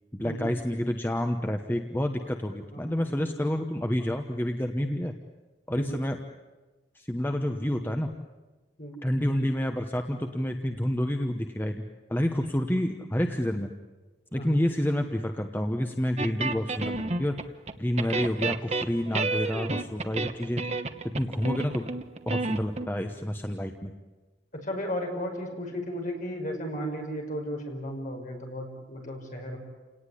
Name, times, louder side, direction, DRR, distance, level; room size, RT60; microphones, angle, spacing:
voice 1, 0.1-5.1 5.7-6.2 6.9-8.1 9.0-11.8 12.1-13.7 14.3-17.4 17.8-20.6 21.1-21.9 22.3-23.9, equal, 10° left, 5 dB, 1.1 m, -29 dB
voice 2, 2.7-3.1 5.7-6.0 8.8-9.0 14.4-14.6 24.5-29.6, equal, 45° left, 1 dB, 5.8 m, -34 dB
sound 1, 16.2-17.7 18.0-22.9, right 3 dB, 35° right, 1.1 m, -31 dB
29.5 x 18.5 x 9.9 m, 1.2 s
head